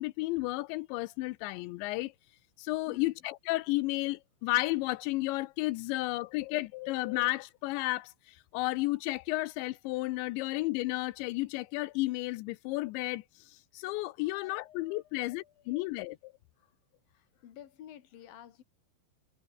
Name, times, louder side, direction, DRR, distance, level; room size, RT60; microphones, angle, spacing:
voice 1, 0.0-2.1 2.6-16.3, left 20 dB, 85° left, 2.7 m, -33 dB
voice 2, 2.9-3.3 14.2-15.9 16.6-16.7 17.1-18.6, left 11 dB, 55° left, 3.4 m, -53 dB
omnidirectional pair, 5.8 m